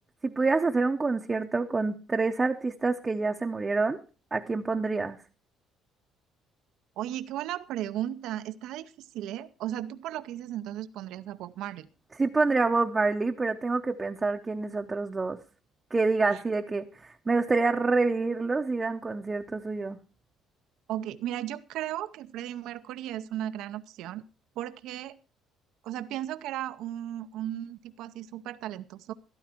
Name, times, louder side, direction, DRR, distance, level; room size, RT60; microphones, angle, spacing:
voice 1, 0.2-4.0 4.3-5.2 12.2-15.4 15.9-20.0, right 3 dB, 20° right, 3 dB, 0.7 m, -27 dB
voice 2, 7.0-11.9 20.9-24.2 24.6-25.1 25.8-29.1, right 12 dB, 75° right, 12 dB, 0.7 m, -35 dB
13.0 x 12.0 x 4.4 m, 0.34 s
cardioid pair, 125°, 0 cm